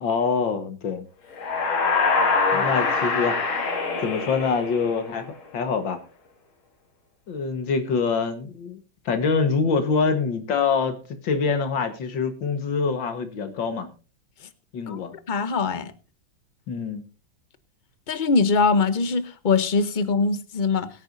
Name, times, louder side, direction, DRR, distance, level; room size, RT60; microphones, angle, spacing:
voice 1, 0.0-1.1 2.5-3.4 4.0-6.0 7.3-8.8 9.1-11.0 11.2-13.9 14.7-15.1 16.7-17.0, left 5 dB, 70° left, 2.1 m, -25 dB
sound 1, 1.3-5.2, left 4 dB, 85° left, 2.9 m, -24 dB
voice 2, 15.3-15.9 18.1-20.9, left 4 dB, 45° left, 0.6 m, -22 dB
22.0 x 9.0 x 2.6 m
omnidirectional pair, 2.2 m